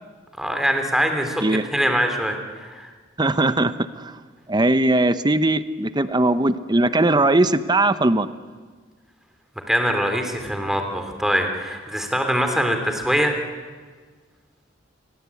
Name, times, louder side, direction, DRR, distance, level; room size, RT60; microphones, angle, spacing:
voice 1, 0.4-2.9 9.7-13.4, equal, ahead, 5 dB, 3.2 m, -23 dB
voice 2, 3.2-4.1 4.5-8.3, right 2 dB, 25° right, 12 dB, 0.9 m, -19 dB
29.0 x 21.5 x 8.4 m, 1.5 s
head